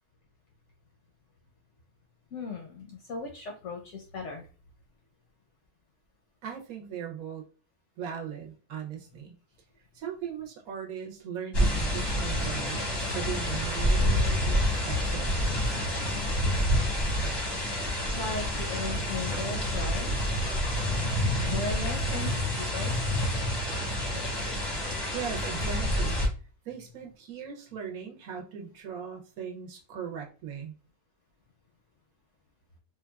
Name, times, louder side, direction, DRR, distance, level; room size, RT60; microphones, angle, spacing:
voice 1, 2.3-4.5 18.1-20.1 21.4-22.9, left 4 dB, 65° left, 2 dB, 0.7 m, -37 dB
voice 2, 6.4-7.4 8.0-9.3 9.9-15.3 25.1-26.2 26.6-30.7, right 7 dB, 70° right, 1 dB, 1.1 m, -39 dB
sound 1, 11.5-26.3, equal, 25° left, 0.5 m, -28 dB
3.7 x 2.2 x 2.2 m, 0.35 s
omnidirectional pair, 1.7 m